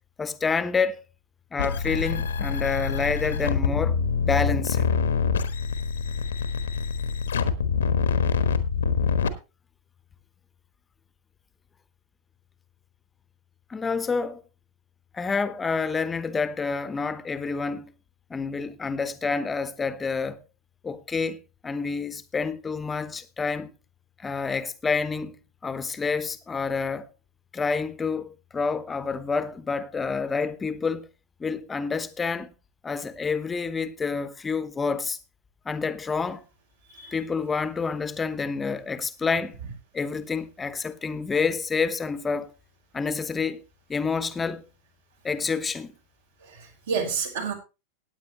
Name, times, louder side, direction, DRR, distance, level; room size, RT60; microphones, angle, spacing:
voice 1, 0.2-1.0 1.5-5.0 13.7-14.4 15.1-17.9 18.3-20.4 20.8-21.4 21.6-23.7 24.2-25.4 25.6-27.1 27.5-31.1 31.4-32.5 32.8-35.2 35.6-36.4 37.1-39.6 39.9-42.5 42.9-43.6 43.9-44.6 45.2-45.9, left 5 dB, 15° left, 1.0 m, -28 dB
sound 1, 1.6-9.3, left 6 dB, 65° left, 1.2 m, -25 dB
voice 2, 46.4-47.5, right 6 dB, 65° right, 4.3 m, -30 dB
16.5 x 9.4 x 3.1 m
figure-of-eight pair, 90°, 0 cm